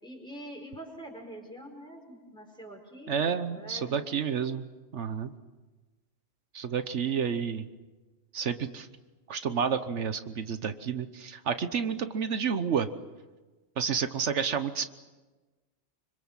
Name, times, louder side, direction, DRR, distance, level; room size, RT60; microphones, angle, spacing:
voice 1, 0.0-4.0, right 1 dB, 5° left, 1 dB, 4.8 m, -45 dB
voice 2, 3.1-4.6 4.9-5.3 6.5-7.7 8.3-8.9 9.3-12.9 13.8-14.9, right 7 dB, 75° right, 10 dB, 1.3 m, -30 dB
26.0 x 25.0 x 7.4 m, 1.2 s
omnidirectional pair, 1.2 m